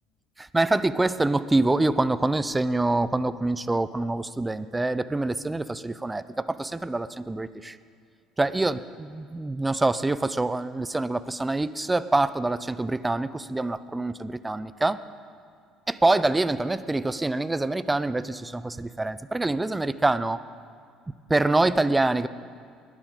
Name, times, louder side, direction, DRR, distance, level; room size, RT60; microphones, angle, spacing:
voice 1, 0.4-7.8 8.4-15.0 15.9-20.4 21.3-22.3, right 2 dB, 15° right, 16 dB, 0.6 m, -25 dB
21.0 x 11.0 x 3.9 m, 2.3 s
hypercardioid pair, 60°, 0 cm